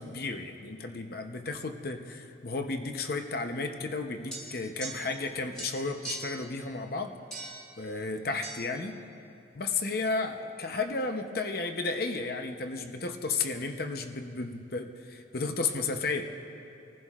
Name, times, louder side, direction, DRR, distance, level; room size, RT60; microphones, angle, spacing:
voice 1, 0.0-7.2 7.8-9.0 9.6-16.2, left 3 dB, 50° left, 5 dB, 0.7 m, -33 dB
sound 1, 4.3-5.3 5.5-6.4 7.3-7.7 8.4-8.6, right 2 dB, 5° left, 2.2 m, -40 dB
26.5 x 15.5 x 2.4 m, 2.7 s
head